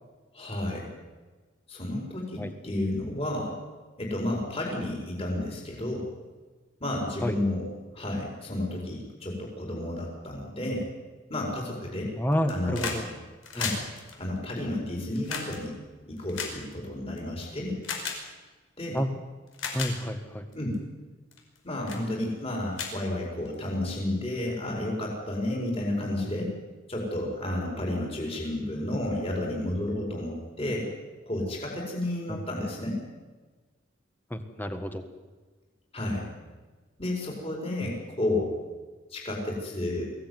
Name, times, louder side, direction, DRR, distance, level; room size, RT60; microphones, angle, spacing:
voice 1, 0.3-0.9 1.7-3.6 4.0-6.1 6.8-7.7 7.9-10.9 11.3-12.1 12.5-13.0 13.5-13.8 14.2-15.7 16.1-17.8 18.8-19.0 20.5-20.8 21.6-26.5 26.9-30.9 31.3-33.0 35.9-36.3 37.0-38.5 39.1-40.1, left 1 dB, 30° left, -2 dB, 4.9 m, -31 dB
voice 2, 12.1-13.0 13.5-13.7 18.9-19.1 19.7-20.4 32.3-32.4 34.3-35.0 37.8-37.9, equal, 10° left, 7 dB, 1.7 m, -30 dB
sound 1, 12.3-13.0 13.3-17.2 17.8-18.2 19.0-19.1 19.5-19.9 20.5-20.8 21.3-21.6 21.9-22.0 22.4-22.5 22.7-23.7 24.8-24.9, left 5 dB, 85° left, 5.2 m, -35 dB
23.5 x 16.5 x 9.6 m, 1.3 s
head